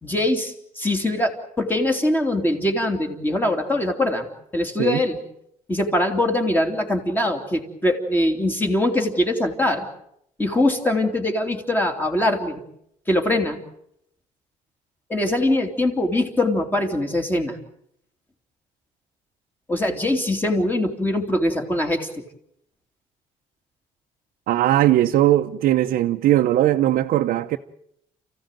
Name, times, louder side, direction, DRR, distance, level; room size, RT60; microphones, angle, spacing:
voice 1, 0.0-4.3 4.5-5.2 5.7-9.9 10.4-12.6 13.1-13.6 15.1-17.6 19.7-22.2, left 1 dB, 15° left, 3.0 m, -22 dB
voice 2, 24.5-27.6, right 13 dB, 75° right, 0.9 m, -19 dB
29.5 x 15.5 x 9.1 m
cardioid pair, 145°, 15 cm